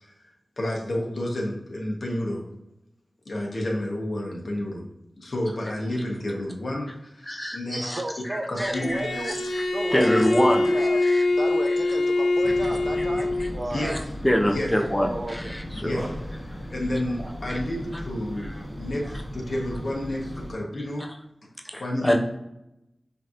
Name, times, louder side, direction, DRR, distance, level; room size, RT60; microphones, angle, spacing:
voice 1, 0.0-2.4 3.2-4.9 5.2-8.0 8.5-9.0 13.7-14.0 14.5-14.7 15.7-16.0 16.7-21.1 21.8-22.2, left 1 dB, 65° left, -1 dB, 1.1 m, -30 dB
voice 2, 7.3-9.0 9.2-9.6 9.9-11.2 13.8-16.1 17.5-17.6 21.7-22.2, equal, 15° left, 2 dB, 0.5 m, -26 dB
voice 3, 8.0-9.4 9.7-14.1 15.0-15.6 16.0-16.1 17.2-17.4, right 1 dB, 45° right, 5 dB, 0.5 m, -33 dB
Bowed string instrument, 8.7-13.6, left 2 dB, 85° left, 0.4 m, -24 dB
sound 1, 12.4-20.5, equal, 30° left, 1.3 m, -37 dB
5.2 x 2.8 x 2.5 m, 0.88 s
cardioid pair, 45°, 0 cm